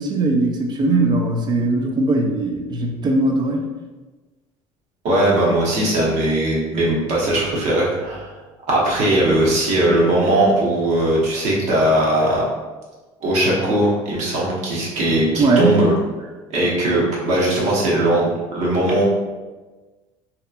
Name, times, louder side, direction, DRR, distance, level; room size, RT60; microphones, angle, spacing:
voice 1, 0.0-3.7 15.4-15.9, right 2 dB, 35° right, 3 dB, 0.4 m, -19 dB
voice 2, 5.0-8.3 8.7-12.4 13.2-15.9 16.5-19.0, right 1 dB, 60° right, -4 dB, 0.9 m, -19 dB
2.8 x 2.2 x 2.3 m, 1.2 s
cardioid pair, 115°, 13 cm